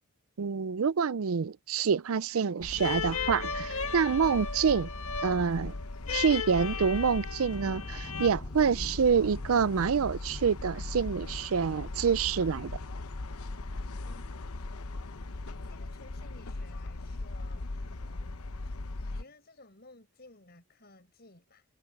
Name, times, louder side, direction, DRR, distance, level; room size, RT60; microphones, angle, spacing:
voice 1, 0.4-4.9 5.2-5.7 6.1-12.8, right 6 dB, 75° right, 0.5 m, -27 dB
Ambience - Quiet Train, 2.6-19.2, left 2 dB, 85° left, 0.9 m, -39 dB
sound 1, 2.8-8.3, left 6 dB, 70° left, 1.7 m, -36 dB
sound 2, 7.5-18.2 18.5-18.8 19.2-19.3, equal, 15° left, 4.6 m, -52 dB
voice 2, 15.5-18.4 19.0-21.6, left 2 dB, 45° left, 5.2 m, -56 dB
head